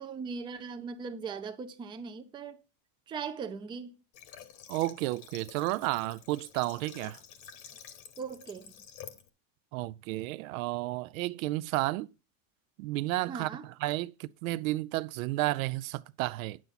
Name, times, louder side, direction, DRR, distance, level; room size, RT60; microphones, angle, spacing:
voice 1, 0.0-2.6 3.1-4.0 8.2-8.7 13.3-13.7, right 5 dB, 10° right, 0.4 m, -39 dB
Water / Water tap faucet, 4.1-9.3, left 9 dB, 55° left, 1.2 m, -50 dB
voice 2, 4.7-7.2 9.7-12.1 12.8-16.6, right 18 dB, 80° right, 0.6 m, -32 dB
9.1 x 7.3 x 4.0 m
supercardioid pair, 150°, 40 cm